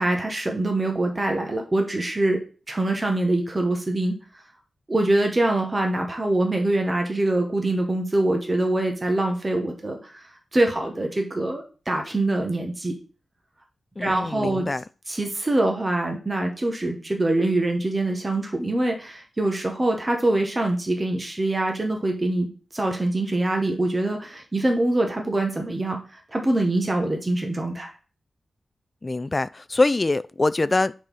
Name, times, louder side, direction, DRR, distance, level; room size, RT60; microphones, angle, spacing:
voice 1, 0.0-2.4 2.7-4.1 4.9-10.3 10.5-12.9 14.0-14.7 15.1-27.9, right 2 dB, 25° right, 1.3 m, -24 dB
voice 2, 14.0-14.8 29.0-30.9, left 2 dB, 25° left, 0.3 m, -24 dB
5.4 x 4.3 x 5.4 m
wide cardioid pair, 135°, 0 cm